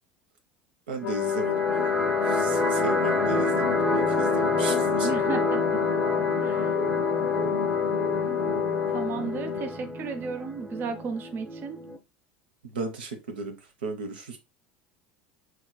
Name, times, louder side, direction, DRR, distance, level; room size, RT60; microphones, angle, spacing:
voice 1, 0.9-5.1 12.6-13.6 13.8-14.4, right 4 dB, 80° right, 0.7 m, -35 dB
Brass instrument, 1.0-9.7, left 10 dB, 65° left, 0.5 m, -27 dB
sound 1, 1.0-12.0, equal, 10° right, 0.8 m, -30 dB
voice 2, 5.0-5.6 6.4-6.8 8.9-11.8, right 5 dB, 40° right, 0.5 m, -34 dB
3.7 x 3.0 x 2.2 m
hypercardioid pair, 75°, 5 cm